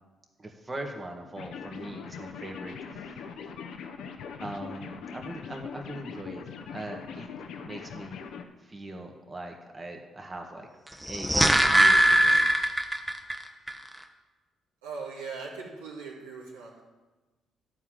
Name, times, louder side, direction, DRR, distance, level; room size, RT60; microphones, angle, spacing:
voice 1, 0.4-3.2 4.4-6.4 6.7-7.3 7.6-8.2 8.6-10.7 11.0-11.3 11.6-12.9, right 1 dB, 30° right, 2 dB, 1.8 m, -41 dB
sound 1, 1.4-8.4, left 6 dB, 70° left, 0.8 m, -41 dB
sound 2, 10.9-13.4 13.7-13.8, right 1 dB, 10° right, 1.1 m, -21 dB
voice 2, 14.8-16.8, right 4 dB, 90° right, -4 dB, 1.8 m, -39 dB
11.0 x 4.8 x 7.7 m, 1.2 s
hypercardioid pair, 45°, 0 cm